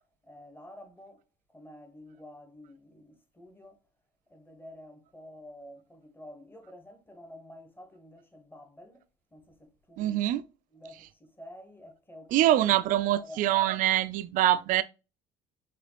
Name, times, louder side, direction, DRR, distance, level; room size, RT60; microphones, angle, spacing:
voice 1, 0.2-1.2 1.5-3.8 4.3-9.0 9.3-10.2 10.7-13.4, left 1 dB, 15° left, 1.4 m, -50 dB
voice 2, 10.0-10.4 12.3-14.8, right 13 dB, 60° right, 0.4 m, -24 dB
4.9 x 3.3 x 3.0 m
supercardioid pair, 105°, 16 cm